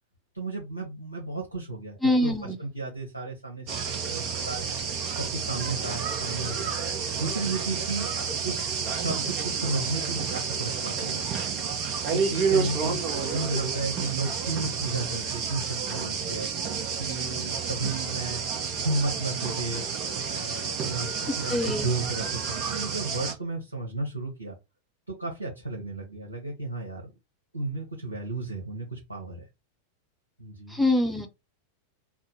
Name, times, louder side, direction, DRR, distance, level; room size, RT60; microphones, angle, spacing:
voice 1, 0.3-4.7 5.1-6.7 7.2-8.1 8.4-11.3 12.1-16.5 17.0-18.4 18.8-19.9 20.2-21.1 21.4-24.5 25.1-27.1 27.5-29.4 30.4-30.8, right 2 dB, 80° right, 1.1 m, -33 dB
voice 2, 2.0-2.6 21.5-21.9 30.7-31.3, left 1 dB, 5° left, 0.8 m, -24 dB
sound 1, 3.7-23.3, right 6 dB, 40° right, 0.9 m, -30 dB
3.6 x 2.1 x 4.2 m
figure-of-eight pair, 90°, 0 cm